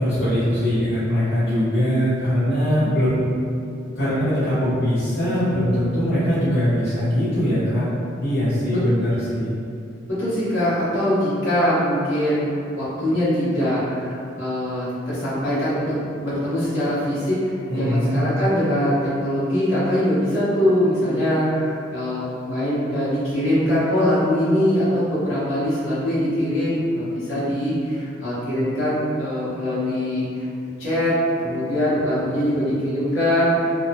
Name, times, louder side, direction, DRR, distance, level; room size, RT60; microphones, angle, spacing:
voice 1, 0.0-3.2 3.9-7.9 8.2-9.5 17.7-18.2, equal, 60° left, -15 dB, 0.9 m, -21 dB
voice 2, 10.1-15.8 16.2-30.5 30.8-33.7, equal, 75° left, -12 dB, 1.2 m, -22 dB
2.7 x 2.1 x 2.7 m, 2.5 s
head